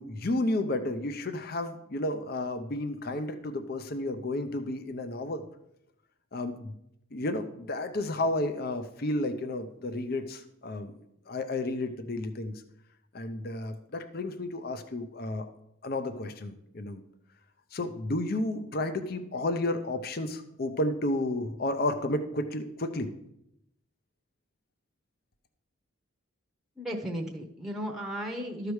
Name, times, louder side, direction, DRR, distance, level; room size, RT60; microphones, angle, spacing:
voice 1, 0.0-5.4 6.3-6.7 7.1-10.9 11.3-12.5 13.1-15.5 15.8-17.0 17.7-23.1, left 1 dB, 45° left, 9 dB, 0.6 m, -32 dB
voice 2, 26.8-28.7, equal, ahead, 0 dB, 0.8 m, -35 dB
13.0 x 4.8 x 4.8 m, 0.79 s
head